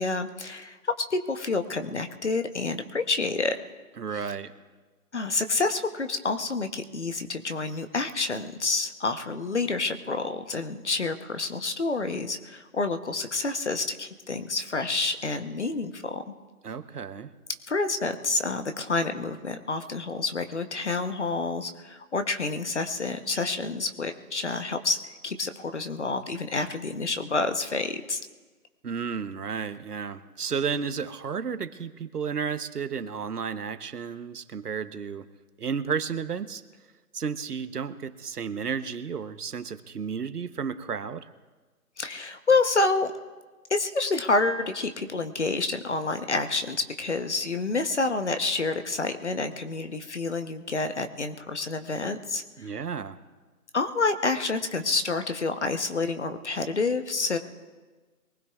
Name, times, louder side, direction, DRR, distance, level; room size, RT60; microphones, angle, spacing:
voice 1, 0.0-3.5 4.1-4.2 5.1-16.2 17.7-28.2 42.0-43.1 43.7-52.7 53.7-57.4, left 3 dB, 50° left, 9 dB, 1.0 m, -28 dB
voice 2, 4.0-4.5 16.6-17.3 28.8-35.3 35.6-36.6 37.1-41.3 52.6-53.2, right 6 dB, 85° right, 12 dB, 1.0 m, -32 dB
23.5 x 19.5 x 2.4 m, 1.3 s
hypercardioid pair, 175°, 45 cm